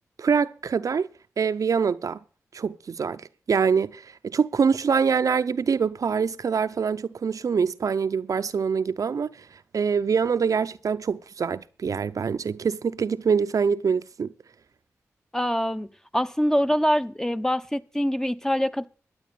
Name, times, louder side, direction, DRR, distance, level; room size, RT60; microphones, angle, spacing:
voice 1, 0.2-1.1 1.4-2.2 2.5-9.4 9.7-14.3, right 6 dB, 70° right, 0.6 m, -24 dB
voice 2, 15.3-15.9 16.1-18.9, equal, 10° left, 0.9 m, -24 dB
13.0 x 8.8 x 6.8 m
cardioid pair, 40°, 6 cm